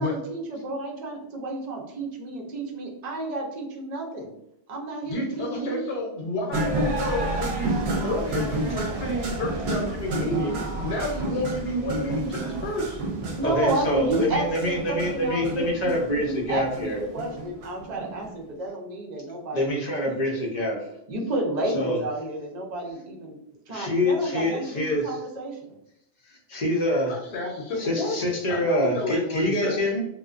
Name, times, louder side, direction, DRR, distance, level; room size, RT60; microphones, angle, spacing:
voice 1, 0.0-4.3 4.7-5.8 13.3-19.7 20.0-20.5 21.1-23.4 23.7-25.6, right 2 dB, 50° right, -1 dB, 0.6 m, -31 dB
voice 2, 5.1-13.0 27.1-29.8, left 1 dB, 75° left, 0 dB, 0.8 m, -30 dB
sound 1, 6.5-18.3, right 2 dB, 80° right, 0.8 m, -30 dB
voice 3, 13.4-17.0 19.5-20.8 21.7-22.0 23.7-25.2 26.2-27.1 27.8-30.0, left 1 dB, 50° left, -1 dB, 0.6 m, -26 dB
2.5 x 2.1 x 2.3 m, 0.80 s
omnidirectional pair, 1.1 m